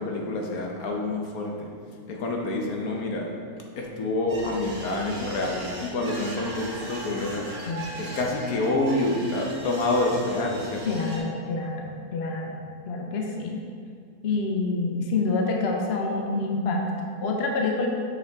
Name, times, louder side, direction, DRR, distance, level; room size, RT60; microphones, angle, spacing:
voice 1, 0.0-1.7 2.1-3.3 3.8-7.5 8.0-10.8, left 2 dB, 70° left, 0 dB, 1.3 m, -27 dB
sound 1, 4.3-11.2, right 2 dB, 55° right, 1.6 m, -39 dB
voice 2, 10.8-13.6 14.2-17.9, left 3 dB, 55° left, 1 dB, 0.8 m, -27 dB
6.7 x 5.4 x 3.4 m, 2.2 s
omnidirectional pair, 1.6 m